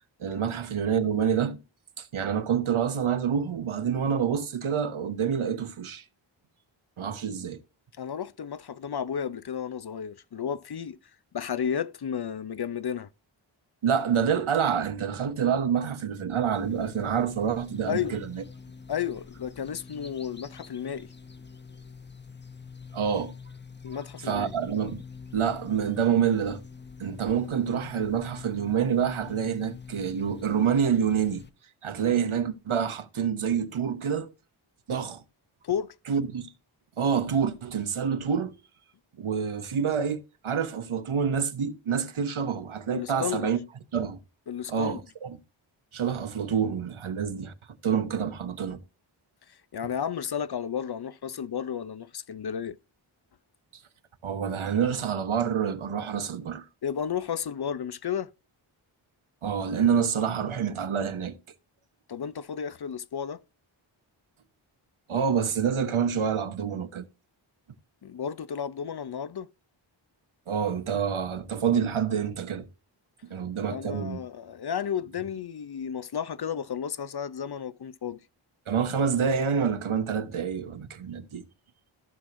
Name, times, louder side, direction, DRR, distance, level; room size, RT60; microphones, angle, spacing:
voice 1, 0.2-1.6 2.0-6.0 7.0-7.6 13.8-18.4 22.9-23.3 23.9-25.0 25.3-26.6 27.0-31.4 31.8-34.3 34.9-35.2 36.1-36.5 37.0-38.5 39.2-43.6 43.9-44.2 44.7-45.4 45.9-47.5 47.8-48.8 54.2-56.6 59.4-61.4 65.1-67.0 70.5-72.7 73.3-74.2 78.7-81.4, right 7 dB, 75° right, 1.1 m, -27 dB
voice 2, 8.0-11.0 11.3-13.1 17.9-18.2 18.9-21.1 23.8-24.5 35.6-35.9 42.9-43.5 44.5-45.0 49.7-52.8 56.8-58.3 62.1-63.4 68.0-69.5 73.7-78.2, left 8 dB, 50° left, 0.6 m, -32 dB
sound 1, 16.5-31.5, left 5 dB, 20° left, 0.9 m, -45 dB
15.0 x 6.0 x 2.6 m
wide cardioid pair, 60°, 49 cm